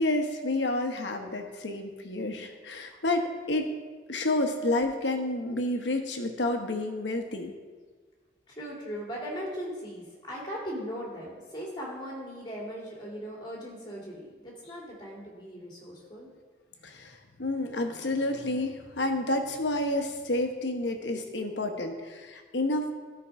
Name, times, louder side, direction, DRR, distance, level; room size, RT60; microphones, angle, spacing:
voice 1, 0.0-3.8 4.1-7.5 16.8-22.9, left 2 dB, 85° left, 5 dB, 1.0 m, -30 dB
voice 2, 8.5-16.3, equal, 25° left, -3 dB, 2.3 m, -39 dB
12.5 x 4.6 x 4.8 m, 1.4 s
head